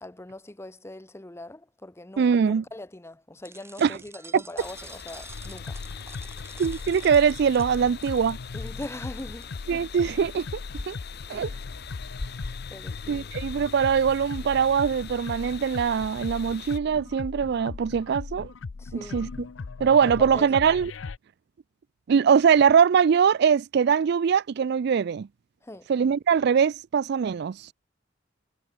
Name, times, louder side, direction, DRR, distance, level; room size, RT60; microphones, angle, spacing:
voice 1, 0.0-5.8 8.5-9.5 11.2-11.6 12.7-13.3 18.8-19.3 20.0-20.5 25.6-25.9, left 1 dB, 15° left, 0.8 m, -41 dB
voice 2, 2.2-2.6 3.8-3.9 6.6-8.4 9.7-10.5 10.9-11.0 11.3-11.5 13.1-18.5 19.1-19.3 19.8-20.9 22.1-25.3 25.9-27.6, right 7 dB, 60° right, 0.4 m, -22 dB
sound 1, 3.4-9.5, right 3 dB, 15° right, 2.1 m, -49 dB
sound 2, 4.6-16.8, left 6 dB, 60° left, 1.1 m, -42 dB
sound 3, 5.3-21.2, left 4 dB, 80° left, 0.6 m, -38 dB
head